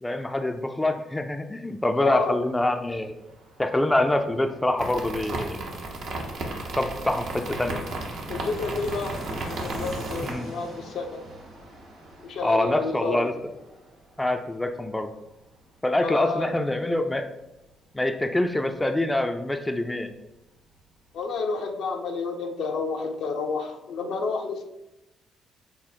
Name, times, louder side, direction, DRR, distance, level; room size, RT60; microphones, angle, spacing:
voice 1, 0.0-3.1 3.6-5.8 6.8-7.8 10.2-10.5 12.4-13.3 14.2-15.1 15.8-17.3 17.9-20.1, left 1 dB, 15° left, 6 dB, 0.3 m, -25 dB
Fixed-wing aircraft airplane, 1.7-20.0 20.3-20.4 20.6-21.3, right 1 dB, 85° right, 1.0 m, -44 dB
voice 2, 2.0-2.4 8.3-9.2 9.5-11.2 12.2-13.2 16.0-16.5 21.1-24.6, left 4 dB, 70° left, 3 dB, 0.5 m, -30 dB
sound 1, 4.8-10.3, right 2 dB, 70° right, 0.6 m, -34 dB
3.6 x 2.1 x 4.2 m, 0.93 s
hypercardioid pair, 50°, 0 cm